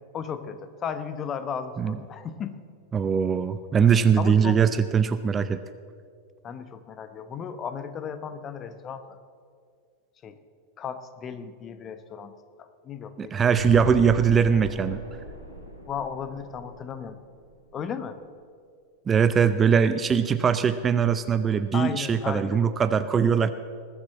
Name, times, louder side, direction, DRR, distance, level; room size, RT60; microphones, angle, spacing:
voice 1, 0.1-2.5 4.2-4.6 6.4-9.2 10.2-10.4 10.8-12.3 12.6-13.6 14.0-14.2 15.9-17.2 17.7-18.2 21.7-22.6, left 7 dB, 25° left, 11 dB, 1.0 m, -35 dB
voice 2, 2.9-5.6 13.2-15.0 19.1-23.5, right 7 dB, 20° right, 12 dB, 0.5 m, -21 dB
sound 1, 13.6-17.7, right 1 dB, 80° left, 2.6 m, -37 dB
19.5 x 7.3 x 7.3 m, 2.1 s
figure-of-eight pair, 90°, 0 cm